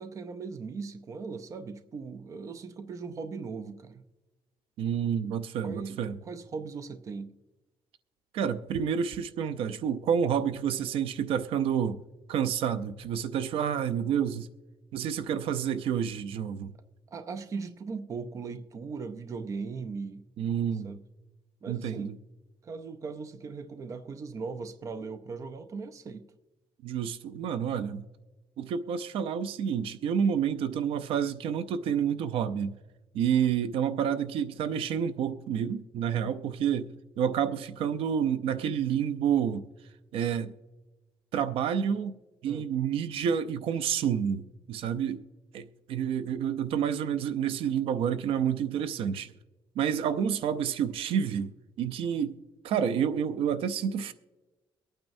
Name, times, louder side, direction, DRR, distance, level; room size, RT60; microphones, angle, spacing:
voice 1, 0.0-4.0 5.6-7.4 17.1-20.2 20.8-21.0 21.6-22.2 22.6-26.2 42.5-42.7, right 4 dB, 35° right, 0.6 m, -39 dB
voice 2, 4.8-6.2 8.3-12.0 12.3-14.5 14.9-16.7 20.4-20.9 21.7-22.2 26.8-28.0 28.6-32.7 33.1-39.7 40.1-40.5 41.3-42.1 42.4-45.2 45.5-49.3 49.8-51.5 51.8-52.4 52.6-54.1, right 8 dB, 80° right, 0.6 m, -29 dB
23.0 x 9.0 x 2.7 m
cardioid pair, 155°, 9 cm